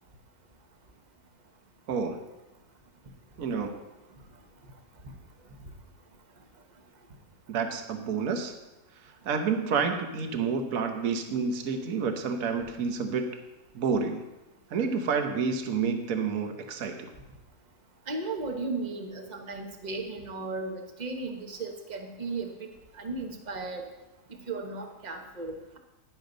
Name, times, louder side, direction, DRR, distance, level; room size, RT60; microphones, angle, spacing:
voice 1, 1.9-2.2 3.4-3.7 7.5-8.5 9.2-13.3 13.7-14.2 14.7-17.1, right 5 dB, 60° right, 5 dB, 1.4 m, -29 dB
voice 2, 18.1-22.7 22.9-23.8 24.5-25.8, right 3 dB, 30° right, 3 dB, 1.1 m, -35 dB
10.5 x 10.5 x 3.9 m, 1.0 s
omnidirectional pair, 1.8 m